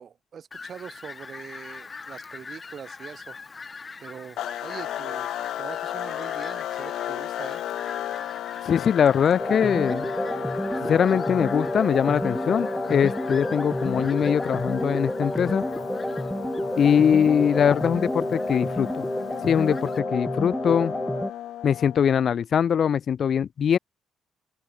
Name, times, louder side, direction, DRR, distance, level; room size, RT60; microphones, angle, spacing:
voice 1, 0.0-3.4 4.0-5.3 5.6-7.6, right 7 dB, 50° right, 3.2 m, -42 dB
Fowl, 0.5-20.0, left 4 dB, 35° left, 1.4 m, -43 dB
sound 1, 4.4-22.2, left 12 dB, 80° left, 1.3 m, -35 dB
voice 2, 8.7-10.1 10.8-15.6 16.8-19.1 19.4-20.9 21.6-23.8, left 8 dB, 55° left, 0.5 m, -22 dB
sound 2, 9.4-21.3, equal, 5° left, 0.7 m, -29 dB
open air
cardioid pair, 90°, 0 cm